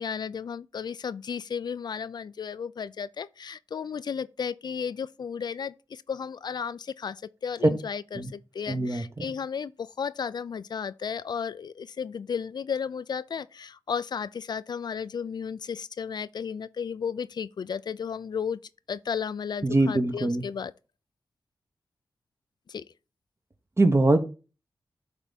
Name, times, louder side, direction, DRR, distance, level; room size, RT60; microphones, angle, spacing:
voice 1, 0.0-18.6 18.9-20.7 22.7-22.9, left 6 dB, 65° left, 0.3 m, -34 dB
voice 2, 8.7-9.2 19.6-20.4 23.8-24.2, right 2 dB, 35° right, 1.2 m, -23 dB
8.8 x 3.4 x 4.1 m
cardioid pair, 45°, 8 cm